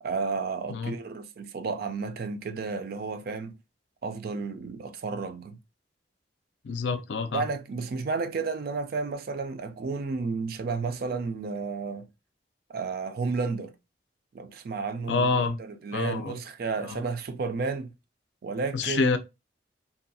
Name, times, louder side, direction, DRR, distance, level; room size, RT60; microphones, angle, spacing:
voice 1, 0.0-3.6 4.0-5.6 7.3-12.1 12.7-13.7 14.3-17.9 18.4-19.2, right 4 dB, 55° right, 0.4 m, -32 dB
voice 2, 6.6-7.4 15.1-15.6 15.9-16.4 16.9-17.0 18.7-19.2, left 4 dB, 80° left, 0.4 m, -27 dB
2.6 x 2.2 x 2.6 m
head